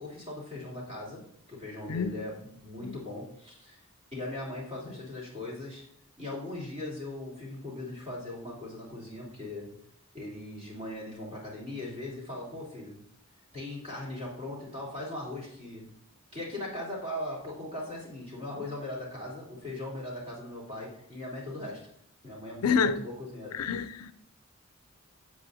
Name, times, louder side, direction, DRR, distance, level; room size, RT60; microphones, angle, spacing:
voice 1, 0.0-3.8 4.1-5.9 6.2-9.7 10.1-13.0 13.5-15.9 16.3-21.8 22.2-23.7, left 1 dB, 30° right, 3.2 m, -39 dB
voice 2, 22.6-23.1 23.5-24.1, left 5 dB, 80° left, 0.4 m, -28 dB
8.0 x 7.9 x 2.8 m
head